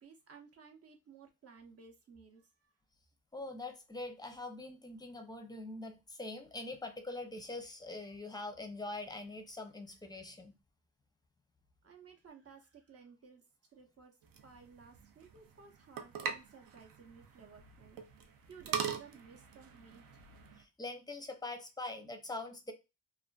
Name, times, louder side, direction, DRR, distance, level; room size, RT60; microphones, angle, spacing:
voice 1, 0.0-2.5 11.8-13.4 13.7-14.1 14.4-18.0 18.5-20.1, right 6 dB, 45° right, 3 dB, 0.7 m, -56 dB
voice 2, 3.3-10.6 20.6-22.7, left 2 dB, 10° left, 5 dB, 0.5 m, -43 dB
sound 1, 14.2-20.6, right 7 dB, 85° right, 0.5 m, -42 dB
2.4 x 2.3 x 2.3 m, 0.26 s
cardioid pair, 95°, 33 cm